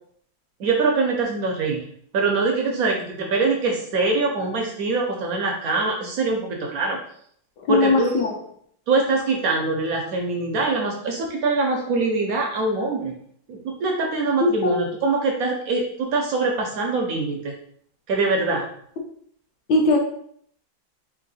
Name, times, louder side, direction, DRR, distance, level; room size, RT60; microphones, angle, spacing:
voice 1, 0.6-1.8 2.1-7.0 7.7-8.1 8.9-13.1 13.5-17.5 18.1-18.7, right 3 dB, 70° right, 1 dB, 0.8 m, -23 dB
voice 2, 7.6-8.4 14.4-14.7 19.7-20.0, left 2 dB, 65° left, 0 dB, 1.2 m, -19 dB
3.6 x 2.7 x 4.0 m, 0.65 s
omnidirectional pair, 2.2 m